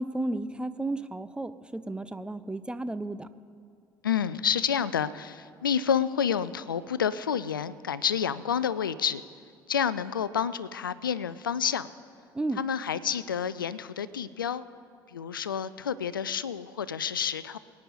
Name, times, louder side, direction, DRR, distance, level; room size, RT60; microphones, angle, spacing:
voice 1, 0.0-3.3 12.3-12.6, right 2 dB, 10° right, 13 dB, 0.7 m, -33 dB
voice 2, 4.0-9.2 9.7-11.9 12.5-14.6 15.1-17.6, left 8 dB, 85° left, 17 dB, 0.4 m, -29 dB
23.5 x 9.5 x 4.1 m, 2.3 s
figure-of-eight pair, 55°, 11 cm